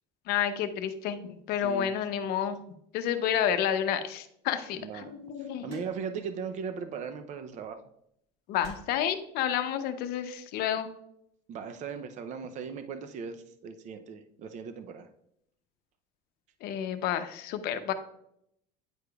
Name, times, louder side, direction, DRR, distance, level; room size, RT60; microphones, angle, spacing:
voice 1, 0.3-2.6 2.9-5.8 8.5-10.9 16.6-17.9, left 9 dB, 60° left, 9 dB, 0.7 m, -30 dB
voice 2, 1.6-1.9 4.7-5.1 5.4-7.8 11.5-15.1, right 6 dB, 40° right, 9 dB, 0.6 m, -38 dB
sound 1, 5.7-6.2 7.4-7.7 8.6-9.1 10.1-10.4, right 1 dB, 60° right, 2.4 m, -51 dB
9.3 x 4.9 x 2.3 m, 0.75 s
cardioid pair, 125°, 18 cm